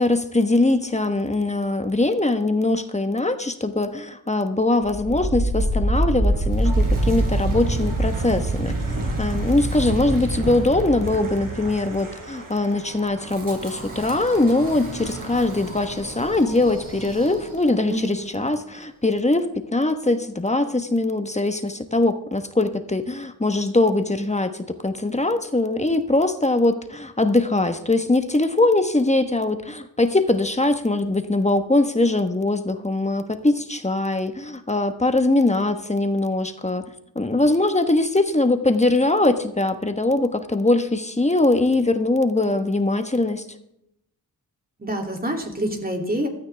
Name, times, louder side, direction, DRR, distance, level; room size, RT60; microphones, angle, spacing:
voice 1, 0.0-36.9 37.1-43.4, left 2 dB, 20° left, 8 dB, 1.3 m, -22 dB
Wind, 4.8-17.8, right 1 dB, 60° right, 4.4 m, -26 dB
voice 2, 17.9-18.4 44.8-46.3, right 1 dB, 25° right, 2 dB, 3.0 m, -27 dB
16.0 x 13.0 x 3.5 m, 0.80 s
wide cardioid pair, 85°, 38 cm